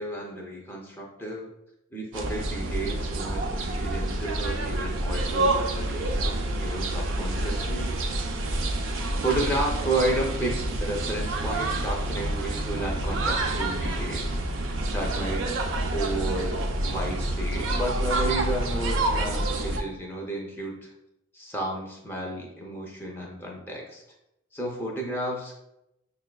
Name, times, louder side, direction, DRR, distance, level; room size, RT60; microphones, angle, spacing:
voice 1, 0.0-1.5 1.9-6.2 6.6-8.0 9.2-14.4 14.9-15.5 15.9-20.9 21.3-24.0 24.5-25.5, right 1 dB, 10° left, -1 dB, 0.4 m, -32 dB
sound 1, 2.1-19.8, right 1 dB, 80° right, 0.4 m, -28 dB
6.5 x 2.3 x 2.2 m, 0.87 s
head